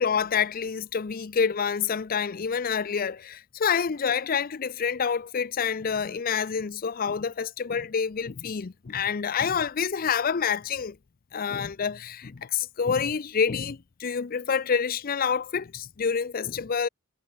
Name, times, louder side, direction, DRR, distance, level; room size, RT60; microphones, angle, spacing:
voice 1, 0.0-11.0 11.3-16.9, left 6 dB, 45° left, 0.5 m, -27 dB
head